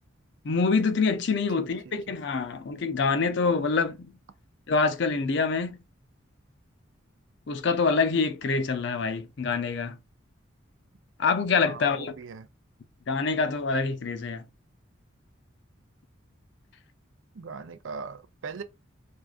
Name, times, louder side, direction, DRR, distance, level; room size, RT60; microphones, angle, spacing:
voice 1, 0.4-4.1 4.7-5.8 7.5-10.0 11.2-12.1 13.1-14.4, left 4 dB, 60° left, 0.5 m, -26 dB
voice 2, 1.5-2.0 11.6-12.5 17.3-18.6, right 5 dB, 80° right, 0.5 m, -40 dB
4.5 x 2.4 x 2.4 m
head